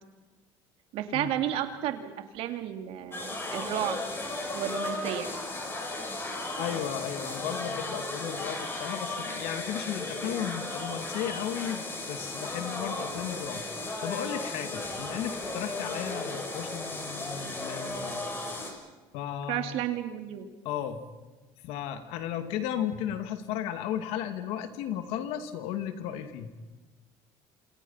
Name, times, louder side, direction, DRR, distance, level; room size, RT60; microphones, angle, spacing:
voice 1, 0.9-4.0 4.5-5.3 19.5-20.5, right 11 dB, 70° right, 6 dB, 2.7 m, -32 dB
sound 1, 3.1-18.7, left 2 dB, 20° left, 7.3 m, -35 dB
voice 2, 6.6-13.6 14.0-18.2 19.1-19.8 20.6-21.0 21.6-26.5, left 10 dB, 80° left, 8 dB, 2.5 m, -35 dB
28.0 x 28.0 x 5.8 m, 1.2 s
cardioid pair, 115°, 10 cm